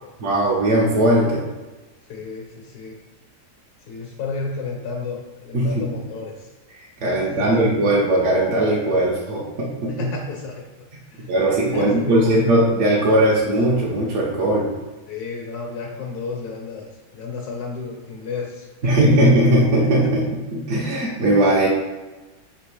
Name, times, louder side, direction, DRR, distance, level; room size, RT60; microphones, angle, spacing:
voice 1, 0.2-1.4 5.5-5.8 7.0-10.1 11.2-14.7 18.8-21.7, right 1 dB, 60° right, -4 dB, 0.8 m, -19 dB
voice 2, 2.1-3.0 3.9-6.5 7.3-7.5 9.9-10.6 11.1-11.3 11.6-12.3 15.1-16.9 17.1-18.9 20.0-20.1, left 4 dB, 70° left, 1 dB, 1.1 m, -32 dB
3.4 x 2.9 x 4.7 m, 1.2 s
omnidirectional pair, 1.8 m